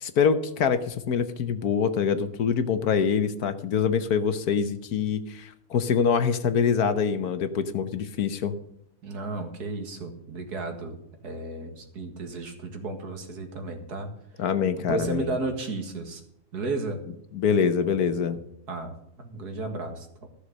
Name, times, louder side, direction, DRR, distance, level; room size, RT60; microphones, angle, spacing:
voice 1, 0.0-8.5 14.4-15.3 17.3-18.4, left 6 dB, 65° left, 10 dB, 1.4 m, -25 dB
voice 2, 9.0-11.0 11.2-14.1 14.9-16.2 16.5-17.0 18.7-20.3, right 3 dB, 70° right, 5 dB, 2.3 m, -33 dB
14.5 x 6.6 x 6.5 m, 0.77 s
omnidirectional pair, 1.8 m